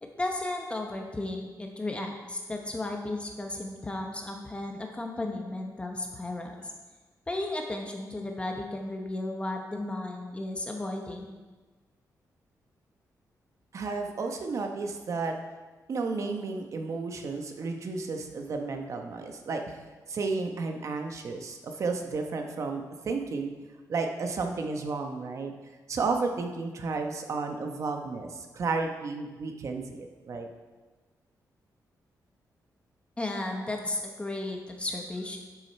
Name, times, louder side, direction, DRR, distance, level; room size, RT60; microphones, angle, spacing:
voice 1, 0.1-6.5 7.3-11.4 33.2-35.4, left 2 dB, 15° left, 2 dB, 0.9 m, -34 dB
voice 2, 13.7-15.3 15.9-19.8 20.1-23.5 23.9-25.5 25.9-30.5, right 4 dB, 50° right, 4 dB, 1.0 m, -32 dB
11.5 x 6.6 x 4.2 m, 1.3 s
wide cardioid pair, 170°, 7 cm